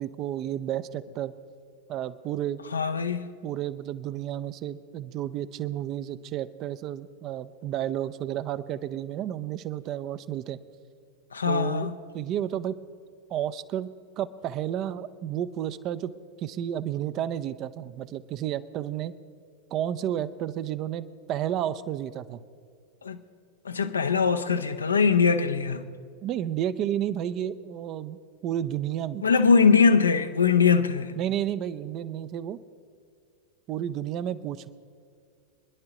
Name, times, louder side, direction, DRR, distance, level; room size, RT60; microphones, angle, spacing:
voice 1, 0.0-1.3 1.9-2.6 3.4-10.6 11.5-11.9 12.1-12.8 13.3-13.9 14.2-16.1 16.4-19.2 19.7-22.4 26.2-29.3 31.2-32.6 33.7-34.7, right 11 dB, 35° right, 0.5 m, -31 dB
voice 2, 2.7-3.3 11.3-11.9 23.0-23.2 23.6-25.8 29.2-31.1, left 5 dB, 75° left, 0.7 m, -22 dB
25.0 x 10.5 x 3.0 m
figure-of-eight pair, 90°, 0 cm